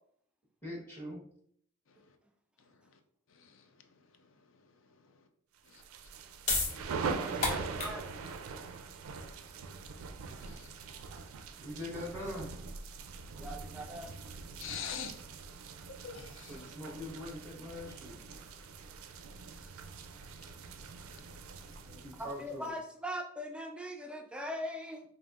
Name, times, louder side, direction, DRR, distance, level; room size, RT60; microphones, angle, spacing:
voice 1, 0.6-1.2 11.6-12.5 16.5-18.3 21.6-22.8, left 1 dB, 15° left, -7 dB, 1.2 m, -43 dB
voice 2, 2.6-3.0 3.3-5.3 5.7-5.8 9.4-9.7 10.1-10.7 14.6-15.2 15.5-16.7 19.2-21.8, left 6 dB, 65° left, 7 dB, 0.5 m, -49 dB
sound 1, 5.7-22.7, right 4 dB, 85° right, 0.4 m, -43 dB
sound 2, 6.1-12.8, left 3 dB, 40° left, 0.9 m, -38 dB
voice 3, 7.2-8.0 13.4-14.1 22.1-25.0, equal, 5° right, 3 dB, 0.4 m, -41 dB
5.2 x 2.7 x 2.4 m, 0.65 s
head